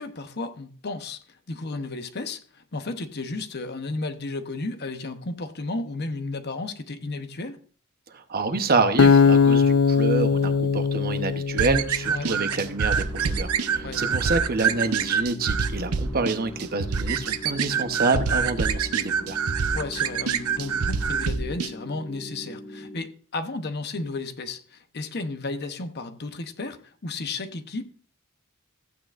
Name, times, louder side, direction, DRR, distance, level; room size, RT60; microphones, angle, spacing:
voice 1, 0.0-7.6 12.1-12.3 13.8-14.2 19.7-27.9, left 3 dB, 50° left, 0.9 m, -33 dB
voice 2, 8.1-19.4, right 3 dB, 45° right, 0.9 m, -27 dB
Acoustic guitar, 9.0-12.2, left 5 dB, 75° left, 0.5 m, -20 dB
sound 1, 11.6-21.7, right 6 dB, 85° right, 0.7 m, -26 dB
sound 2, 13.0-23.0, left 1 dB, 25° left, 1.3 m, -41 dB
14.5 x 8.9 x 2.5 m
head